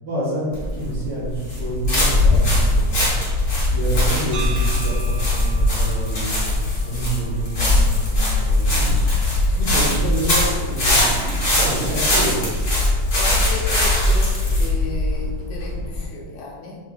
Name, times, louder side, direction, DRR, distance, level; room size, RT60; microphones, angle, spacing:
voice 1, 0.0-3.1 3.7-6.4 6.8-8.9 9.6-12.6, right 1 dB, 70° right, -9 dB, 1.3 m, -28 dB
sound 1, 0.5-16.0, left 1 dB, 40° left, 1.1 m, -20 dB
sound 2, 4.3-8.4, right 5 dB, 85° right, 2.0 m, -39 dB
voice 2, 13.1-16.8, left 2 dB, 75° left, -2 dB, 1.9 m, -34 dB
4.7 x 3.1 x 2.2 m, 1.5 s
omnidirectional pair, 3.5 m